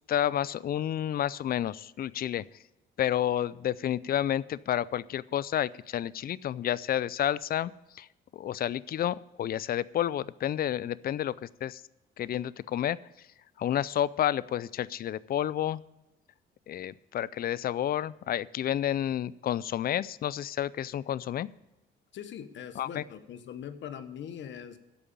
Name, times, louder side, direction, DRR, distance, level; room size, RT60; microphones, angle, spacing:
voice 1, 0.1-2.4 3.0-8.1 8.3-11.8 12.2-13.0 13.6-15.8 16.7-21.5 22.8-23.0, left 11 dB, 50° left, 19 dB, 0.4 m, -30 dB
voice 2, 22.1-24.8, left 9 dB, 70° left, 10 dB, 1.1 m, -41 dB
14.0 x 5.2 x 8.7 m, 0.97 s
cardioid pair, 90°, 20 cm